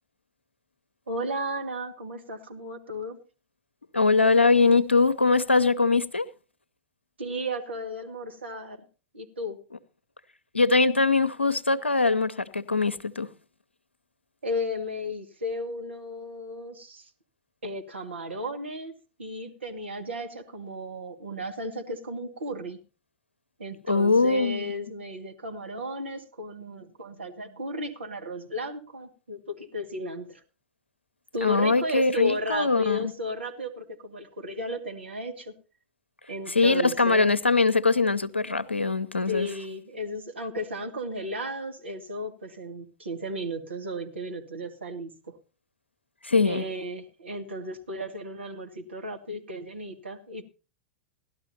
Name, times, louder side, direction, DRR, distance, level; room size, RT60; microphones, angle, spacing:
voice 1, 1.1-3.2 7.2-8.8 9.1-9.6 14.4-17.1 17.6-22.8 23.6-30.4 31.3-35.5 36.3-37.3 39.3-45.4 46.4-50.4, equal, 80° right, 2.0 m, -34 dB
voice 2, 3.9-6.3 10.5-13.3 23.9-24.7 31.4-33.1 36.5-39.5 46.2-46.6, left 3 dB, 90° left, 0.7 m, -22 dB
17.5 x 12.0 x 2.8 m
figure-of-eight pair, 95°, 6 cm